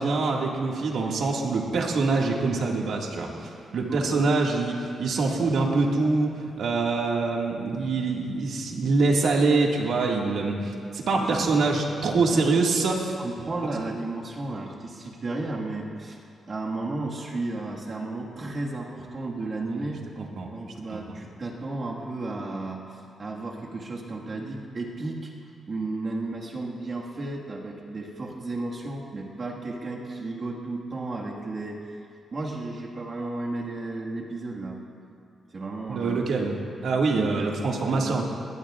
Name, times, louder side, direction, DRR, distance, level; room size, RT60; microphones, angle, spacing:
voice 1, 0.0-6.3 6.6-13.1 20.2-20.5 21.1-21.2 35.9-38.2, right 3 dB, 65° right, -1 dB, 1.9 m, -25 dB
voice 2, 3.9-4.3 11.1-11.5 12.3-12.4 13.2-16.2 16.5-20.0 20.5-25.3 25.7-32.0 32.3-34.8 35.5-36.3 37.2-37.6 37.9-38.2, right 2 dB, 35° right, -3 dB, 1.7 m, -33 dB
20.0 x 20.0 x 2.4 m, 2.4 s
wide cardioid pair, 165°, 0 cm